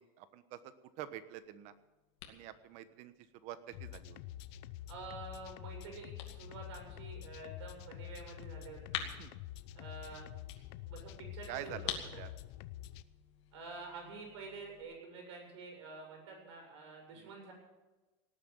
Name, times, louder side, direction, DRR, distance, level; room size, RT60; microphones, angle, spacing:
voice 1, 0.2-0.6 1.0-1.7 2.3-3.1 3.4-4.2 9.0-9.3 11.5-12.3 17.2-17.3, right 11 dB, 55° right, 12 dB, 1.3 m, -46 dB
sound 1, 1.3-14.8, left 10 dB, 85° left, 2.5 m, -49 dB
sound 2, 3.7-13.0, left 13 dB, 65° left, 0.7 m, -47 dB
voice 2, 4.9-9.0 9.7-10.3 10.8-11.8 12.1-12.2 13.5-17.5, right 3 dB, 90° right, 1 dB, 7.5 m, -48 dB
18.5 x 9.3 x 7.2 m, 1.1 s
supercardioid pair, 140°, 14 cm